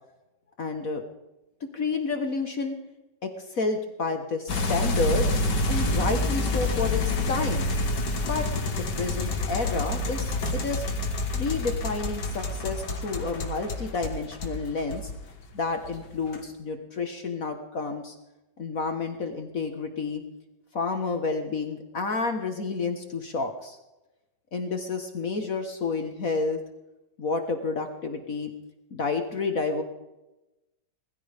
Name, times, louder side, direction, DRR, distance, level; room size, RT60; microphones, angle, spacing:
voice 1, 0.6-1.0 1.6-2.7 3.2-5.3 5.7-7.7 8.2-10.9 11.3-15.1 15.5-18.1 18.6-20.2 20.7-23.8 24.5-26.6 27.2-28.5 28.9-29.8, left 4 dB, 50° left, 5 dB, 1.7 m, -30 dB
sound 1, 4.5-15.4 15.8-16.4, left 2 dB, 70° left, 2.3 m, -28 dB
21.0 x 15.0 x 3.5 m, 0.99 s
omnidirectional pair, 2.0 m